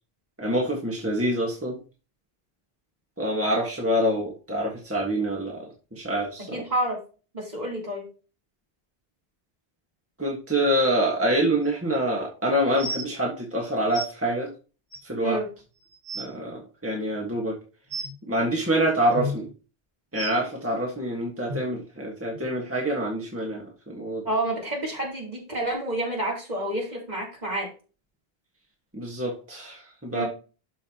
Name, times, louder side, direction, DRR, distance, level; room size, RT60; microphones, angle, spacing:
voice 1, 0.4-1.8 3.2-6.6 10.2-14.5 15.0-15.4 16.2-17.6 18.3-19.5 20.1-24.2 28.9-30.2, right 1 dB, 15° right, -1 dB, 1.5 m, -26 dB
voice 2, 6.5-7.0 7.3-8.1 15.2-15.4 24.2-27.7 30.1-30.3, right 1 dB, 45° right, -3 dB, 3.2 m, -29 dB
sound 1, 11.7-11.8 12.7-13.1 13.9-14.1 14.9-15.0 15.6-15.7 15.9-16.3 17.9-18.1 19.1-19.3 20.1-20.3 21.5-21.6 22.3-22.4 23.1-23.2, equal, 80° right, 2.5 m, -32 dB
12.5 x 5.7 x 2.9 m, 0.36 s
omnidirectional pair, 1.0 m